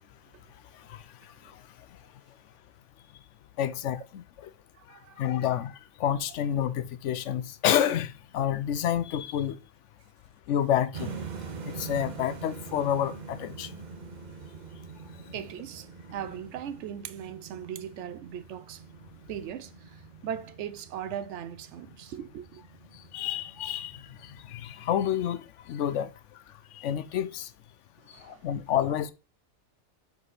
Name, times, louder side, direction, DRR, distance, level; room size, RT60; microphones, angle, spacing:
voice 1, 3.6-4.2 5.2-9.6 10.5-11.1 11.8-13.7 23.1-24.0 24.5-25.4 25.7-26.1 26.7-27.5 28.3-29.1, left 10 dB, 85° left, 0.9 m, -28 dB
voice 2, 4.8-5.2 15.3-18.8 19.3-22.6 28.0-28.5, right 9 dB, 80° right, 0.9 m, -39 dB
sound 1, 10.9-24.9, right 5 dB, 45° right, 0.8 m, -44 dB
4.9 x 4.7 x 4.1 m
omnidirectional pair, 1.2 m